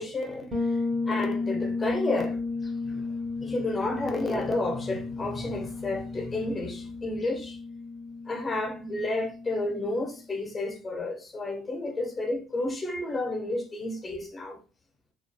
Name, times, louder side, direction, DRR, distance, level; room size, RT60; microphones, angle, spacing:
voice 1, 0.0-7.6 8.3-14.6, left 2 dB, 20° left, 0.5 m, -31 dB
Bass guitar, 0.5-10.2, left 3 dB, 20° right, 0.6 m, -33 dB
2.5 x 2.2 x 2.2 m
cardioid pair, 135°, 0 cm